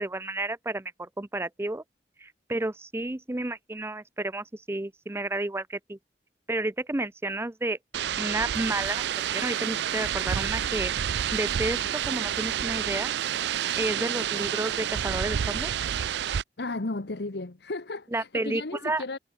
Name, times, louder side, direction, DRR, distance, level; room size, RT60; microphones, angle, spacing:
voice 1, 0.0-1.8 2.2-6.0 6.5-7.8 8.2-9.0 9.3-10.9 11.3-13.1 13.8-15.7 18.1-19.0, right 2 dB, 15° right, 0.6 m, -31 dB
sound 1, 7.9-16.4, right 9 dB, 70° right, 0.4 m, -29 dB
voice 2, 16.6-19.2, left 2 dB, 70° left, 1.2 m, -34 dB
head